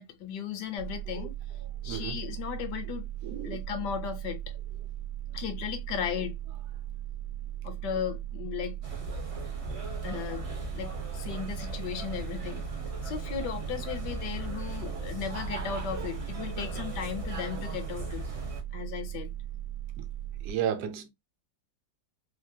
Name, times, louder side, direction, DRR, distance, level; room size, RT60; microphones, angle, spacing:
voice 1, 0.0-1.3 1.8-3.1 3.4-4.6 5.3-6.4 7.6-8.8 10.0-12.6 13.0-18.2 18.7-19.3, left 8 dB, 75° left, 1.3 m, -36 dB
sound 1, 0.8-20.5, right 12 dB, 85° right, 1.3 m, -38 dB
voice 2, 1.8-2.2 3.2-3.6 20.4-21.1, right 9 dB, 70° right, 1.1 m, -32 dB
sound 2, 8.8-18.6, left 1 dB, 50° right, 0.4 m, -39 dB
3.3 x 2.3 x 2.6 m
omnidirectional pair, 1.9 m